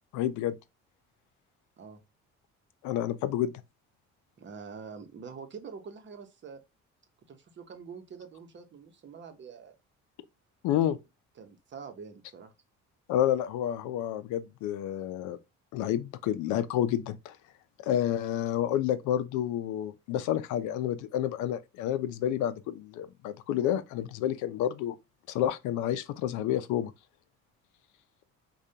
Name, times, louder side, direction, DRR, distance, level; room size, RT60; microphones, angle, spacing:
voice 1, 0.1-0.6 2.8-3.5 10.6-11.0 13.1-15.4 15.7-17.4 17.8-25.0 25.3-26.9, left 11 dB, 85° left, 0.5 m, -29 dB
voice 2, 4.4-6.6 7.3-9.7 11.4-12.5, right 5 dB, 40° right, 0.8 m, -45 dB
5.0 x 2.3 x 2.8 m
cardioid pair, 110°, 29 cm